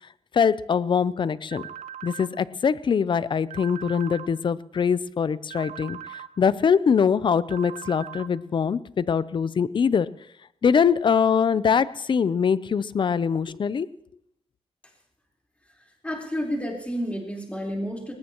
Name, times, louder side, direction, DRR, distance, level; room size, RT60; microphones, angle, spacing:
voice 1, 0.3-1.6 2.0-6.0 6.4-10.1 10.6-13.9, left 6 dB, 45° left, 17 dB, 0.5 m, -23 dB
sound 1, 1.5-2.3 3.5-4.3 5.5-6.3 7.5-8.3, right 9 dB, 85° right, 0.9 m, -39 dB
voice 2, 16.0-18.1, equal, 10° left, -2 dB, 4.1 m, -30 dB
20.5 x 19.0 x 3.0 m, 0.74 s
wide cardioid pair, 110°, 11 cm